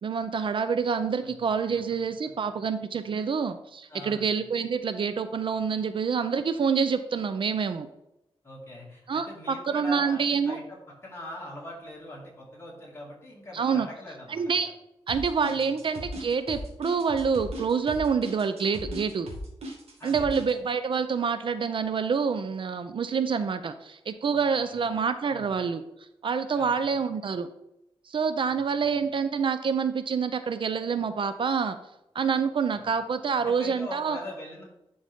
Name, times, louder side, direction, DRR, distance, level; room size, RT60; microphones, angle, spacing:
voice 1, 0.0-7.9 9.1-10.6 13.5-13.9 14.3-14.7 15.1-19.3 20.0-25.8 26.2-27.5 28.1-31.8 32.1-34.2, right 6 dB, 55° right, 10 dB, 0.4 m, -27 dB
voice 2, 3.9-4.3 8.4-10.8 11.0-14.7 15.5-15.7 20.0-20.5 24.3-24.8 25.3-25.6 26.6-26.9 28.5-28.9 32.7-32.8 33.4-34.6, left 1 dB, 25° left, -4 dB, 2.5 m, -43 dB
sound 1, 15.1-20.5, right 1 dB, 80° right, 1.7 m, -38 dB
11.0 x 4.0 x 3.6 m, 0.87 s
wide cardioid pair, 140°, 10 cm